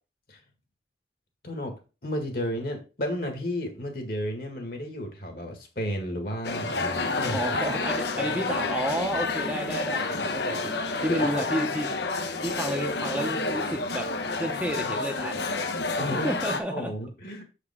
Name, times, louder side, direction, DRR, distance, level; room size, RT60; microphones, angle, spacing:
voice 1, 1.4-1.7 2.0-7.6 11.1-11.5 16.0-16.3 16.7-17.4, equal, 55° left, 4 dB, 1.7 m, -32 dB
sound 1, 6.4-16.6, left 3 dB, 80° left, 0.9 m, -29 dB
voice 2, 7.2-10.7 11.0-11.9 12.4-14.1 14.3-15.4 16.1-16.9, right 1 dB, 10° right, 2 dB, 0.8 m, -31 dB
7.3 x 5.0 x 3.5 m, 0.32 s
head